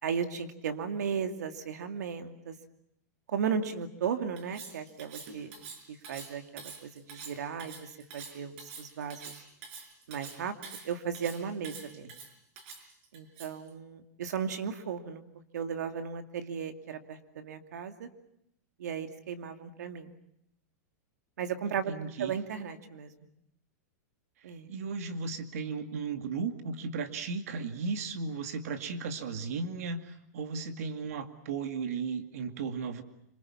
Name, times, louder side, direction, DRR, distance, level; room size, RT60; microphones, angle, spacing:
voice 1, 0.0-2.5 3.3-5.5 5.9-9.4 10.1-10.6 10.8-12.1 13.1-15.2 15.5-18.1 18.8-20.1 21.4-23.1 24.4-24.7, right 7 dB, 80° right, 7 dB, 2.6 m, -35 dB
Cutlery silverware, 4.4-13.7, right 5 dB, 45° right, 5.2 m, -46 dB
voice 2, 21.7-22.3 24.7-33.0, right 4 dB, 60° right, 8 dB, 2.3 m, -35 dB
26.5 x 25.0 x 7.2 m, 0.76 s
supercardioid pair, 175°, 9 cm